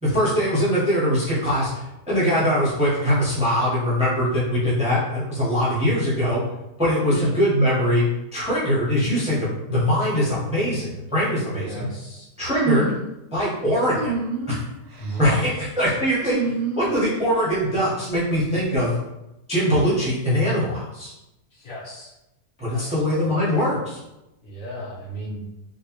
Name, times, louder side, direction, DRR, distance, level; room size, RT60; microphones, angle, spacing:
voice 1, 0.0-6.4 6.8-8.1 8.3-11.9 12.4-12.9 13.3-14.1 14.5-14.6 15.2-15.5 15.8-16.4 16.8-18.9 19.5-21.1 22.6-24.0, equal, 5° right, -10 dB, 0.8 m, -22 dB
voice 2, 11.5-12.3 15.0-15.4 21.5-22.1 22.7-23.5 24.4-25.4, equal, 60° left, -6 dB, 1.3 m, -34 dB
sound 1, 12.5-13.1 13.9-14.6 15.0-15.4 16.2-17.4, right 4 dB, 90° right, 1.2 m, -27 dB
3.8 x 2.6 x 2.9 m, 0.93 s
omnidirectional pair, 1.8 m